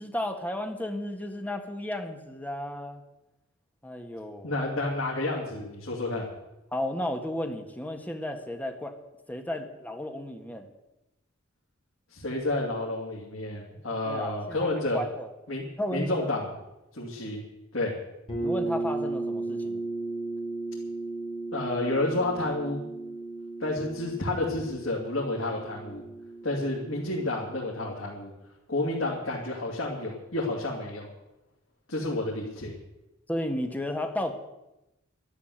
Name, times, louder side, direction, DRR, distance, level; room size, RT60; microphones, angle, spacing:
voice 1, 0.0-3.0 3.8-4.5 6.7-8.9 9.3-10.7 14.0-15.3 15.8-16.3 18.4-19.8 33.3-34.3, left 1 dB, 10° left, 5 dB, 1.7 m, -33 dB
voice 2, 4.4-6.3 12.1-15.0 15.5-15.6 15.9-16.5 16.9-17.4 17.7-17.9 21.5-22.9 23.6-26.0 26.4-28.3 28.7-31.1 31.9-32.7, left 2 dB, 70° left, -4 dB, 2.9 m, -30 dB
sound 1, 18.3-27.9, right 2 dB, 25° left, 5.2 m, -35 dB
12.5 x 11.5 x 8.0 m, 0.95 s
head